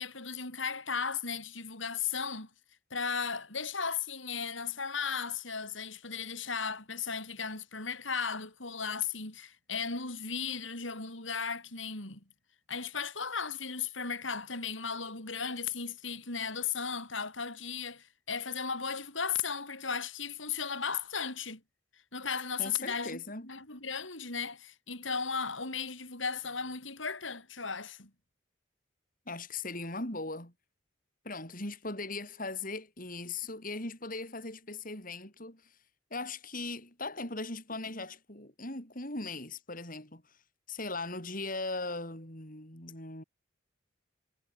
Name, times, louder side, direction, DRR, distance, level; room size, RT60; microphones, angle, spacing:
voice 1, 0.0-2.5 2.9-12.2 12.7-21.6 22.1-28.1, left 6 dB, 75° left, 7.9 m, -36 dB
voice 2, 22.6-23.5 29.3-30.5 31.2-35.8 36.1-40.4 40.7-43.2, left 3 dB, 45° left, 7.4 m, -39 dB
head